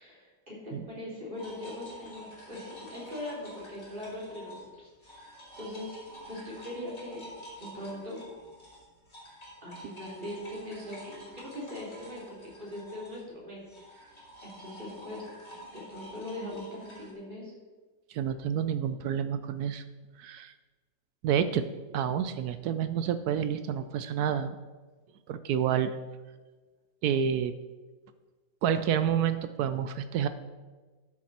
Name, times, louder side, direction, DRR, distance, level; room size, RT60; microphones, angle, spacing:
voice 1, 0.0-5.3 5.6-5.9 6.3-7.2 7.6-8.2 9.6-14.0 14.4-15.2 15.7-17.5, left 1 dB, 30° right, -5 dB, 3.4 m, -41 dB
sound 1, 1.3-4.7 5.0-17.1, equal, 35° left, 3.0 m, -49 dB
voice 2, 18.1-19.8 20.2-20.5 21.2-21.6 21.9-24.6 25.3-25.9 27.0-27.5 28.6-30.3, right 8 dB, 70° right, 11 dB, 1.0 m, -29 dB
12.5 x 7.3 x 4.2 m, 1.3 s
omnidirectional pair, 1.9 m